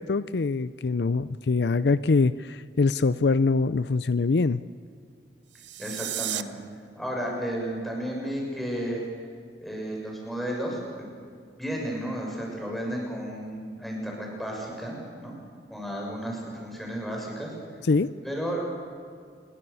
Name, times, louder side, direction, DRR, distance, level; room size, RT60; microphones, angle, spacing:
voice 1, 0.0-4.6 17.9-18.1, left 4 dB, 70° left, 15 dB, 0.5 m, -24 dB
sound 1, 5.5-6.4, right 13 dB, 85° right, 0.9 m, -33 dB
voice 2, 5.8-6.6 6.9-9.0 9.6-11.1 11.6-15.3 15.7-17.5 18.2-18.7, equal, ahead, -2 dB, 6.7 m, -33 dB
28.0 x 22.5 x 7.0 m, 2.2 s
head